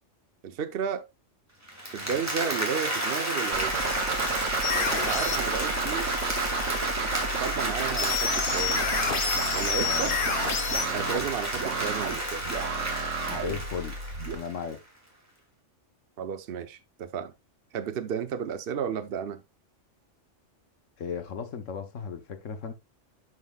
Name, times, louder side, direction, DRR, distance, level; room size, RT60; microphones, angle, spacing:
voice 1, 0.4-1.0 1.9-3.8 4.9-6.1 7.4-8.9 9.5-10.2 10.9-12.5 16.2-17.3 17.7-19.4, right 7 dB, 55° right, 0.9 m, -33 dB
Applause, 1.7-14.7, right 1 dB, 10° right, 2.5 m, -31 dB
sound 1, 3.5-14.3, right 5 dB, 85° right, 1.3 m, -33 dB
sound 2, 4.6-5.4 8.0-10.9, left 6 dB, 50° left, 1.0 m, -29 dB
voice 2, 9.8-10.2 10.9-11.3 13.3-14.0 14.3-14.8 21.0-22.7, left 6 dB, 85° left, 1.4 m, -36 dB
11.0 x 5.6 x 2.3 m
omnidirectional pair, 1.3 m